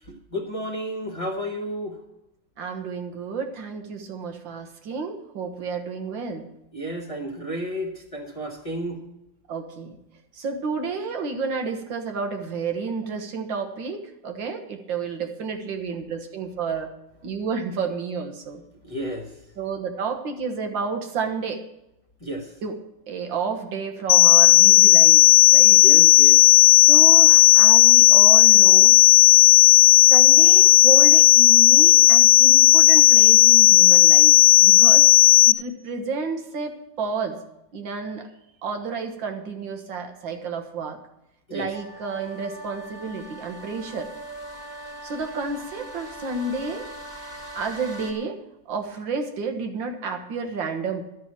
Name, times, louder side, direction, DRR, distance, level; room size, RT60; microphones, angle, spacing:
voice 1, 0.1-1.9 6.7-9.0 18.8-19.3 22.2-22.5 25.8-26.4 41.5-41.7, equal, 20° left, 2 dB, 1.2 m, -31 dB
voice 2, 2.6-6.5 9.5-10.0 10.4-16.9 17.2-18.6 19.6-21.6 22.6-22.8 23.1-25.2 25.5-25.8 26.7-29.0 30.1-35.1 35.5-37.4 37.7-38.3 38.6-41.0 41.5-44.1 45.0-46.9 47.6-48.4 48.7-51.0, right 5 dB, 75° right, 5 dB, 2.0 m, -30 dB
sound 1, 24.1-35.5, left 19 dB, 70° left, 1.1 m, -13 dB
sound 2, 41.7-48.1, right 1 dB, 35° right, 2.1 m, -40 dB
12.0 x 6.3 x 8.6 m, 0.87 s
omnidirectional pair, 2.1 m